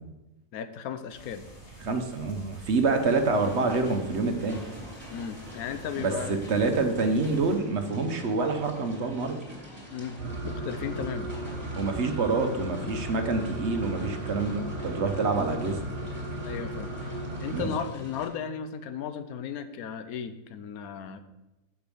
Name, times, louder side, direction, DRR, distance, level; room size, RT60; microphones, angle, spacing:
voice 1, 0.5-1.5 5.1-6.4 9.9-11.3 16.4-21.2, left 7 dB, 70° left, 11 dB, 1.2 m, -35 dB
sound 1, 1.1-7.6, equal, 90° left, 3.5 m, -49 dB
voice 2, 1.8-4.6 5.9-9.4 11.8-15.8 17.5-17.7, right 3 dB, 50° right, 6 dB, 1.1 m, -27 dB
sound 2, 3.0-18.3, equal, 5° right, 3.2 m, -46 dB
sound 3, 10.2-17.6, right 1 dB, 30° right, 1.7 m, -35 dB
7.0 x 6.2 x 7.6 m, 1.0 s
omnidirectional pair, 1.7 m